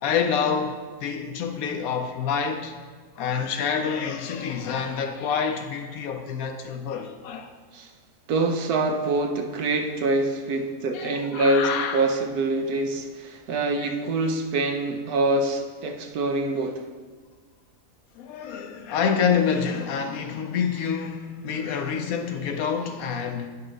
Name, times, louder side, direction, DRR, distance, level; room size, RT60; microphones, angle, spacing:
voice 1, 0.0-2.8 3.2-7.5 10.9-12.0 13.8-13.9 18.2-23.5, left 6 dB, 70° left, 1.0 m, -27 dB
voice 2, 8.3-16.8, right 2 dB, 75° right, 1.2 m, -25 dB
9.5 x 5.5 x 3.9 m
omnidirectional pair, 1.6 m